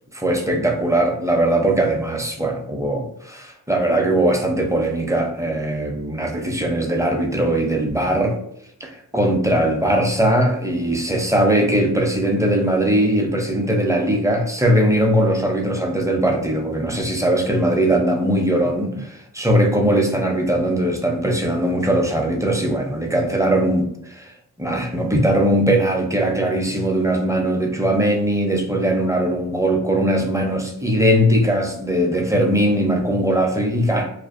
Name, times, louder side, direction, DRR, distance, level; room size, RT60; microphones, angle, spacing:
voice 1, 0.1-8.4 8.8-24.3 24.6-34.1, right 1 dB, 10° right, 2 dB, 0.4 m, -20 dB
2.4 x 2.2 x 2.4 m, 0.74 s
cardioid pair, 55°, 34 cm